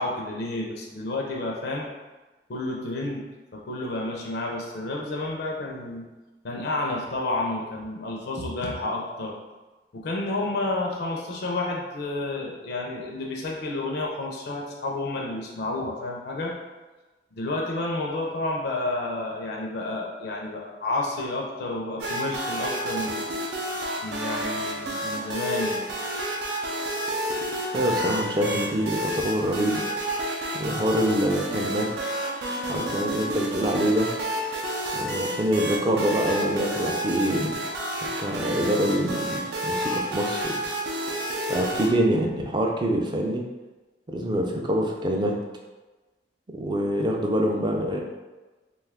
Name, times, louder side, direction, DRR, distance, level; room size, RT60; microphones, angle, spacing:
voice 1, 0.0-1.9 2.5-6.1 6.4-9.4 9.9-16.6 17.3-23.4 24.0-25.9, left 2 dB, 65° left, -1 dB, 0.5 m, -30 dB
sound 1, 22.0-41.9, right 1 dB, 80° right, 0.5 m, -30 dB
voice 2, 27.7-29.8 30.5-31.9 32.7-34.1 34.9-37.6 38.2-40.6 41.5-43.4 44.1-45.4 46.5-48.0, equal, 25° right, 1 dB, 0.4 m, -25 dB
2.5 x 2.3 x 3.4 m, 1.2 s
head